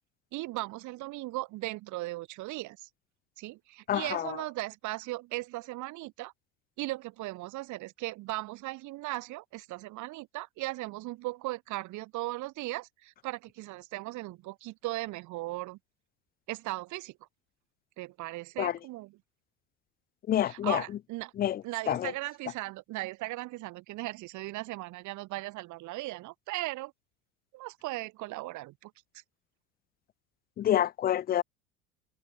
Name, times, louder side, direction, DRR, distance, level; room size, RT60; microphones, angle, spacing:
voice 1, 0.3-2.9 3.4-6.3 6.8-15.8 16.5-17.2 18.0-19.2 20.4-21.3 21.6-26.9 27.5-28.9, right 19 dB, 45° right, 2.3 m, -37 dB
voice 2, 3.9-4.3 18.6-18.7 20.3-20.8 21.4-22.1 30.6-31.4, left 11 dB, 25° left, 0.6 m, -28 dB
figure-of-eight pair, 75°, 40 cm